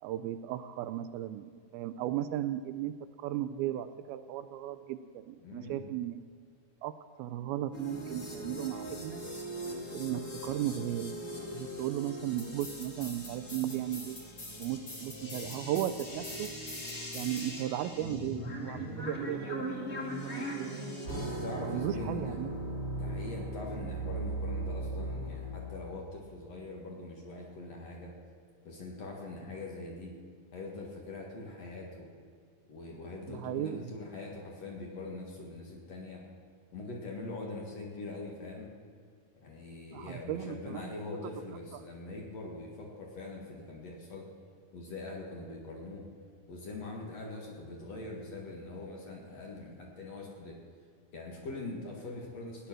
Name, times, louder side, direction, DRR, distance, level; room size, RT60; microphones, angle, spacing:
voice 1, 0.0-6.2 6.8-6.9 7.2-9.2 9.9-11.2 11.5-14.2 14.6-16.5 17.1-20.9 21.6-22.6 33.3-33.9 39.9-40.9, right 12 dB, 80° right, 11 dB, 2.3 m, -36 dB
voice 2, 5.4-5.9 21.1-22.4 22.9-28.1 28.6-30.2 30.5-32.1 32.7-36.2 36.7-38.7 39.4-44.3 44.7-46.1 46.5-50.6 51.1-52.7, left 2 dB, 50° left, -1 dB, 2.5 m, -43 dB
sound 1, 7.7-25.7, right 1 dB, 30° left, 1.9 m, -39 dB
16.0 x 10.0 x 6.2 m, 2.1 s
omnidirectional pair, 4.5 m